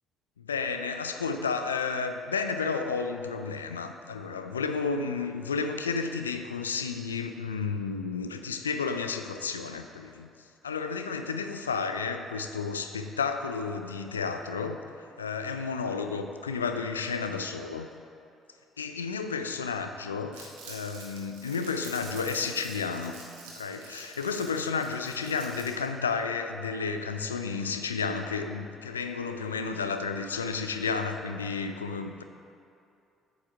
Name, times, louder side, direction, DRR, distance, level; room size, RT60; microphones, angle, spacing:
voice 1, 0.4-10.3 10.6-14.8 15.2-17.9 18.8-23.2 23.6-32.2, left 5 dB, 90° left, 7 dB, 0.4 m, -32 dB
Crumpling crinkling, 20.3-25.9, right 4 dB, 75° right, 1.4 m, -46 dB
8.4 x 5.4 x 5.6 m, 2.6 s
hypercardioid pair, 50°, 0 cm